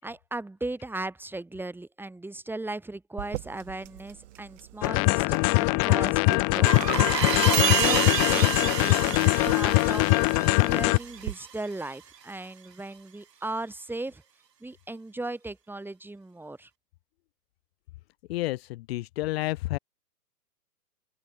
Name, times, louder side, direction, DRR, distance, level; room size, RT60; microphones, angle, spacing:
voice 1, 0.0-6.9 7.2-9.3 9.5-10.2 10.6-14.2 14.6-16.7, right 2 dB, 5° right, 4.5 m, -37 dB
sound 1, 3.2-11.3, right 14 dB, 50° right, 1.0 m, -34 dB
sound 2, 4.8-11.0, left 34 dB, 20° left, 0.6 m, -22 dB
sound 3, 6.7-12.0, right 7 dB, 80° right, 1.4 m, -30 dB
voice 2, 18.3-19.8, left 18 dB, 40° left, 1.2 m, -30 dB
open air
hypercardioid pair, 120°, 48 cm